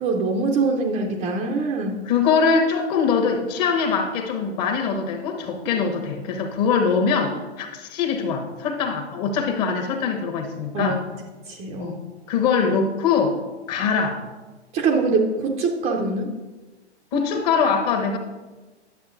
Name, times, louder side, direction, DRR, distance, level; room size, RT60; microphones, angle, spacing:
voice 1, 0.0-2.0 10.7-11.0 11.5-12.0 14.7-16.3, right 3 dB, 20° right, 2 dB, 0.5 m, -23 dB
voice 2, 2.0-11.0 11.8-12.0 12.3-13.4 13.7-14.2 17.1-18.2, left 5 dB, 35° left, 4 dB, 1.2 m, -22 dB
10.5 x 7.6 x 2.5 m, 1.2 s
hypercardioid pair, 120°, 35 cm